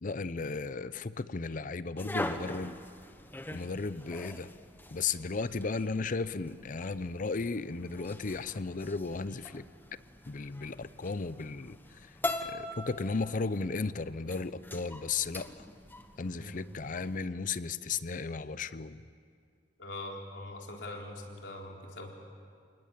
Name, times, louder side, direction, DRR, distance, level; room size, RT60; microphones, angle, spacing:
voice 1, 0.0-2.8 3.5-4.5 4.9-9.6 10.3-11.8 12.4-15.5 16.2-19.0, left 4 dB, 50° left, 15 dB, 0.6 m, -35 dB
sound 1, 2.0-17.2, left 1 dB, 10° left, 1.1 m, -43 dB
voice 2, 19.8-22.1, left 2 dB, 80° left, 0 dB, 4.0 m, -42 dB
28.0 x 19.5 x 9.0 m, 2.2 s
head